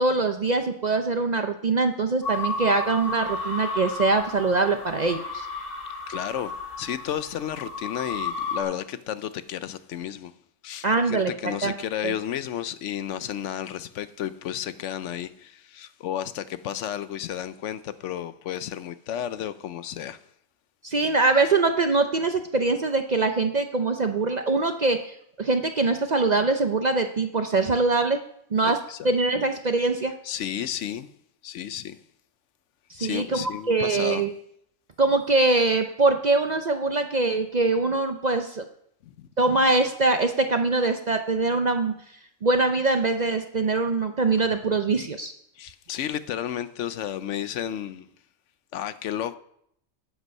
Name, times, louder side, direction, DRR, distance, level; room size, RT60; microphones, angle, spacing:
voice 1, 0.0-5.5 10.8-11.8 12.0-12.1 20.8-28.2 28.5-28.8 29.0-30.1 32.9-34.3 35.0-38.7 39.4-41.9 42.4-45.3, right 3 dB, 45° right, 0.6 m, -23 dB
sound 1, 2.2-8.6, left 3 dB, 45° left, 3.2 m, -33 dB
voice 2, 6.1-6.5 6.8-10.3 10.6-20.2 28.6-29.1 30.2-31.1 31.4-32.0 33.0-34.2 39.2-39.3 45.6-48.1 48.7-49.4, left 10 dB, 70° left, 0.9 m, -32 dB
11.5 x 8.1 x 5.3 m
omnidirectional pair, 1.3 m